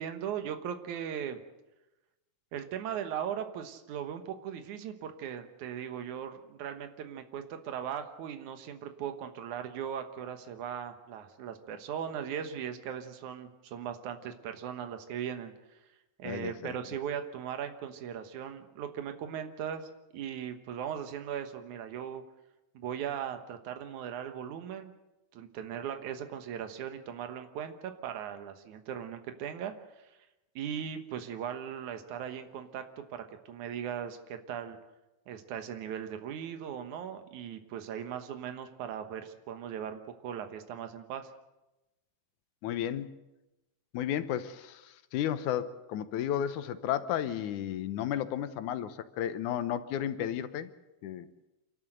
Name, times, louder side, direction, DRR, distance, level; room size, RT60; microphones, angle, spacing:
voice 1, 0.0-1.4 2.5-15.8 16.2-22.2 22.7-24.9 25.3-30.1 30.6-34.8 35.3-41.3, right 8 dB, 80° right, 7 dB, 2.7 m, -38 dB
voice 2, 16.2-16.7 42.6-43.1 43.9-50.7 51.0-51.3, left 10 dB, 85° left, 12 dB, 2.4 m, -33 dB
28.5 x 12.0 x 7.8 m, 1.0 s
omnidirectional pair, 3.4 m